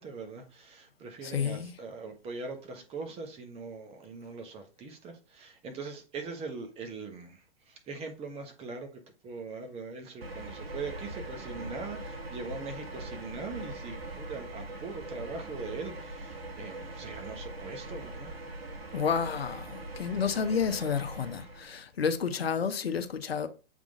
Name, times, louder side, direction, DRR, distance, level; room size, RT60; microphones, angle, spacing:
voice 1, 0.0-18.3, right 4 dB, 20° right, 1.2 m, -41 dB
voice 2, 1.2-1.7 18.9-23.5, left 6 dB, 90° left, 0.9 m, -30 dB
sound 1, 10.2-21.8, right 2 dB, 85° right, 1.7 m, -41 dB
7.3 x 3.7 x 3.6 m
hypercardioid pair, 130°, 30 cm